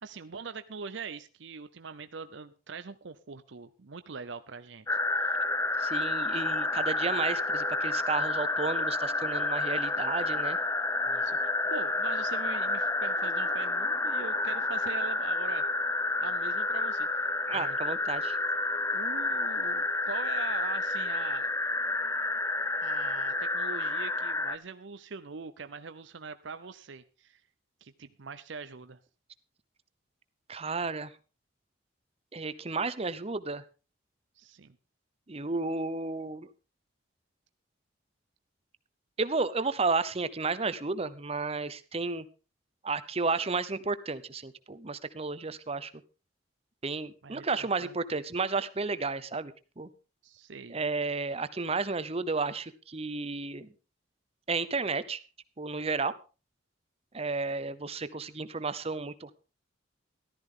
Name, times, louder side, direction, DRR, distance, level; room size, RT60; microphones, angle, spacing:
voice 1, 0.0-4.9 5.1-5.4 11.1-15.7 16.2-17.1 17.5-17.8 18.9-21.5 22.8-27.4 27.8-29.0 34.4-34.8 47.2-48.0 50.2-50.8, right 5 dB, 65° right, 11 dB, 0.7 m, -42 dB
sound 1, 4.9-24.6, left 2 dB, 15° left, 0.6 m, -30 dB
voice 2, 5.8-10.6 17.5-18.4 30.5-31.1 32.3-33.6 35.3-36.5 39.2-42.2 42.8-45.9 46.8-49.9 50.7-53.7 54.5-55.2 55.6-56.1 57.1-59.3, right 4 dB, 30° right, 14 dB, 0.8 m, -32 dB
14.5 x 13.0 x 3.8 m, 0.33 s
head